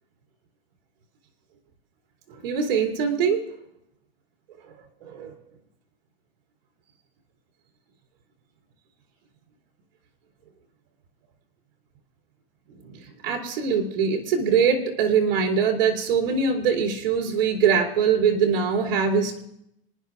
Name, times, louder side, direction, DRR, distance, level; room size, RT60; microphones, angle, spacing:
voice 1, 2.4-3.4 5.0-5.3 12.9-19.4, right 6 dB, 70° right, -3 dB, 2.9 m, -22 dB
27.0 x 10.5 x 2.5 m, 0.79 s
supercardioid pair, 170°, 30 cm